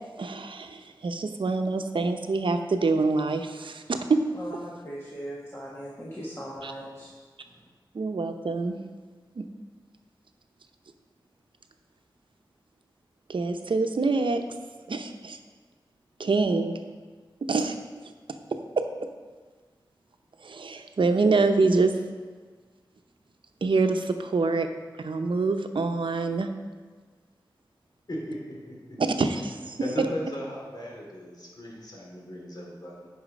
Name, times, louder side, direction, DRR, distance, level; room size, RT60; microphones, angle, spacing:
voice 1, 0.2-4.2 6.6-6.7 7.9-8.8 9.4-9.5 13.3-14.4 14.9-15.4 16.2-16.7 17.5-17.8 18.8-18.9 20.4-21.9 23.6-24.7 25.0-26.5 29.0-29.8, right 3 dB, 80° right, 6 dB, 0.7 m, -25 dB
voice 2, 4.4-7.1, equal, 30° left, -5 dB, 1.5 m, -39 dB
voice 3, 28.1-29.0 29.8-33.1, equal, 55° left, -3 dB, 2.8 m, -37 dB
9.8 x 5.6 x 5.2 m, 1.5 s
wide cardioid pair, 75°, 8 cm